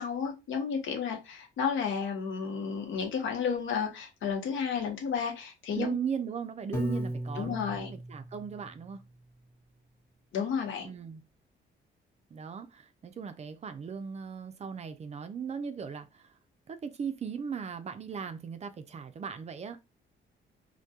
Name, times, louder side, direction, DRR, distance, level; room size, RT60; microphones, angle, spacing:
voice 1, 0.0-5.9 6.9-7.0 7.4-7.9 10.3-10.9, left 6 dB, 75° left, 0.8 m, -32 dB
voice 2, 5.7-9.0 10.8-11.2 12.3-16.3 16.7-19.8, right 6 dB, 35° right, 0.4 m, -38 dB
Piano, 6.7-8.9, right 1 dB, 15° left, 0.9 m, -35 dB
2.2 x 2.1 x 2.7 m
cardioid pair, 90°, 20 cm